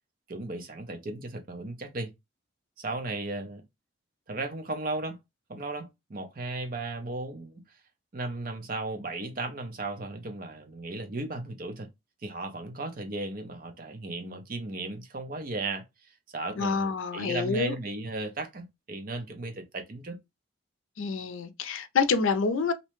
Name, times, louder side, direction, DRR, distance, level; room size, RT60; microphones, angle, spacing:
voice 1, 0.3-2.1 2.8-3.6 4.3-5.2 5.5-7.6 8.1-11.9 12.2-15.8 16.3-20.2, right 2 dB, 45° right, 0.6 m, -35 dB
voice 2, 16.6-17.8 21.0-22.7, left 5 dB, 80° left, 0.4 m, -27 dB
2.7 x 2.1 x 3.0 m
head